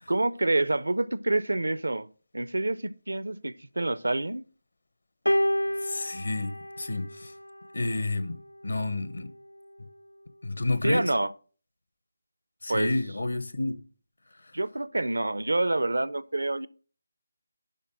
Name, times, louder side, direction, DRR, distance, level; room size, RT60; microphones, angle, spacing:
voice 1, 0.1-2.1 2.3-4.4 10.8-11.3 12.7-12.9 14.5-16.7, right 2 dB, 70° right, 0.5 m, -27 dB
sound 1, 5.3-7.7 8.7-8.9, equal, 85° left, 0.3 m, -29 dB
voice 2, 5.8-7.3 7.7-8.4 8.6-9.3 10.4-11.1 12.6-13.8, left 2 dB, 65° left, 1.0 m, -30 dB
11.0 x 4.1 x 6.2 m
figure-of-eight pair, 155°, 0 cm